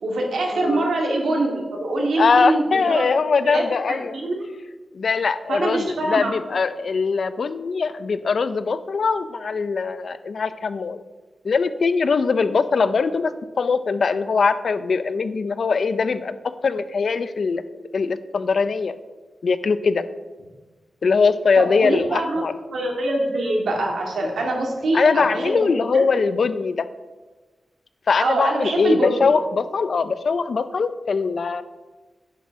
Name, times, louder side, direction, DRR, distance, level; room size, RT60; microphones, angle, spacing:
voice 1, 0.0-3.1 3.4-3.6 3.9-4.4 5.5-6.3 21.6-22.4 22.7-26.0 28.2-29.3, right 2 dB, 90° right, 1 dB, 2.2 m, -24 dB
voice 2, 0.5-0.9 2.2-4.2 4.9-11.0 11.4-17.6 17.9-19.0 19.4-20.1 21.0-22.5 24.9-26.9 28.1-31.6, left 5 dB, 65° left, 13 dB, 0.5 m, -21 dB
9.9 x 6.1 x 5.8 m, 1.3 s
wide cardioid pair, 115°, 0 cm